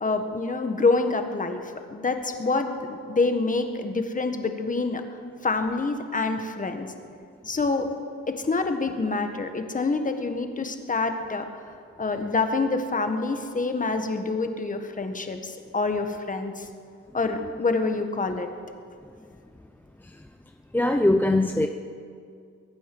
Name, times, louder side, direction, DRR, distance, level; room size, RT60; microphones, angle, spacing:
voice 1, 0.0-5.0 5.4-6.9 7.5-7.9 8.3-11.5 12.0-16.7 17.1-18.5, left 3 dB, 25° left, 6 dB, 1.6 m, -26 dB
voice 2, 20.7-21.7, left 1 dB, 5° left, 5 dB, 0.6 m, -22 dB
22.0 x 9.2 x 6.2 m, 2.2 s
cardioid pair, 90°, 30 cm